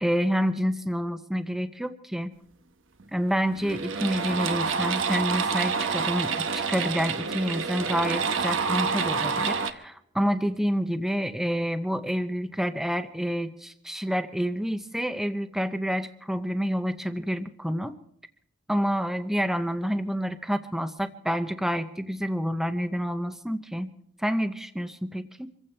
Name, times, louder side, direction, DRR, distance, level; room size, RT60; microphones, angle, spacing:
voice 1, 0.0-2.3 3.1-18.0 18.7-23.9 24.2-25.5, equal, ahead, 9 dB, 0.6 m, -28 dB
sound 1, 3.0-3.1 3.5-9.7, right 5 dB, 70° right, 1.0 m, -28 dB
26.0 x 15.5 x 3.3 m, 0.72 s
head